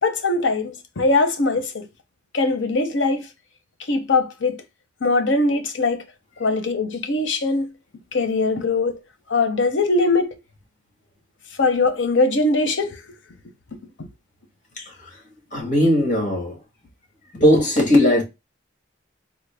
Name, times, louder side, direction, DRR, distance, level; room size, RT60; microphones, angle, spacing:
voice 1, 0.0-1.9 2.3-3.3 3.9-4.6 5.0-6.0 6.4-7.7 8.1-9.0 9.3-10.4 11.6-13.0 14.0-14.1, left 3 dB, 75° left, 0.7 m, -21 dB
voice 2, 14.8-15.2 15.5-16.6 17.3-18.2, left 1 dB, 40° left, 1.6 m, -18 dB
3.7 x 2.1 x 3.3 m
head